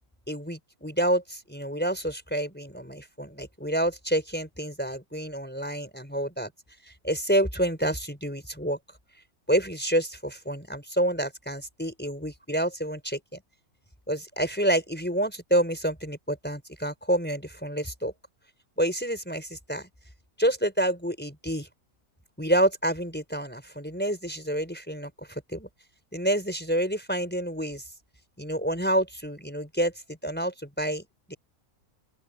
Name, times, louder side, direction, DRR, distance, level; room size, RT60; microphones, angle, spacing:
voice 1, 0.3-6.5 6.9-8.8 9.5-13.2 14.1-18.1 18.8-19.9 20.4-21.7 22.4-25.7 26.1-27.8 28.4-31.4, right 1 dB, 5° left, 4.7 m, -28 dB
open air
omnidirectional pair, 1.6 m